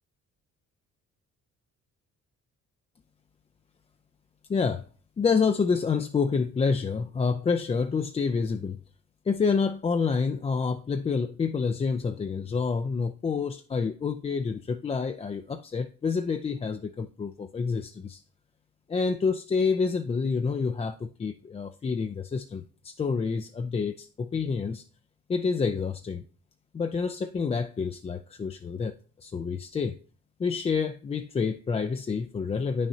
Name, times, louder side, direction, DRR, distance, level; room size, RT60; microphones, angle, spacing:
voice 1, 4.5-4.8 5.2-8.8 9.2-18.2 18.9-24.8 25.3-26.2 26.7-30.0 30.4-32.9, left 5 dB, 20° left, 0.3 m, -28 dB
8.6 x 6.3 x 2.7 m
cardioid pair, 90°, 30 cm